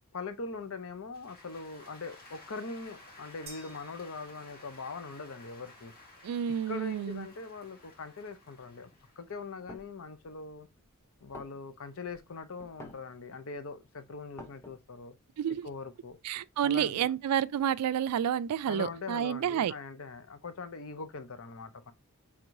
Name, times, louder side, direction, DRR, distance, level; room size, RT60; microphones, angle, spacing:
voice 1, 0.1-5.9 6.7-8.9 9.2-10.7 11.2-15.1 15.6-16.2 16.6-17.1 18.7-21.9, left 4 dB, 65° left, 0.6 m, -42 dB
sound 1, 1.1-13.6 14.0-16.1 16.6-18.3, left 2 dB, 40° left, 1.9 m, -56 dB
sound 2, 3.5-4.9, right 4 dB, 25° right, 1.1 m, -53 dB
voice 2, 6.2-7.3 15.4-15.7 16.2-19.7, right 9 dB, 90° right, 0.3 m, -30 dB
sound 3, 9.7-10.0 10.7-10.8 11.1-11.2 11.3-12.0 12.6-13.1 13.6-13.7 13.9-15.0, left 1 dB, 10° left, 0.7 m, -49 dB
4.6 x 3.6 x 2.6 m
head